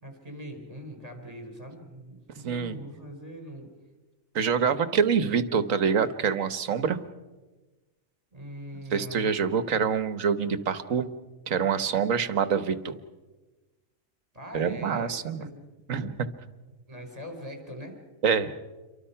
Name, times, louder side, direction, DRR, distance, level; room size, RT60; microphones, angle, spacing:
voice 1, 0.0-3.7 8.3-9.3 14.3-15.6 16.9-18.0, equal, 25° right, 4 dB, 4.6 m, -42 dB
voice 2, 2.4-2.8 4.3-7.0 8.9-11.1 11.5-12.9 14.5-15.4 15.9-16.2 18.2-18.5, right 6 dB, 75° right, 13 dB, 1.6 m, -26 dB
28.5 x 23.5 x 5.7 m, 1.2 s
omnidirectional pair, 1.4 m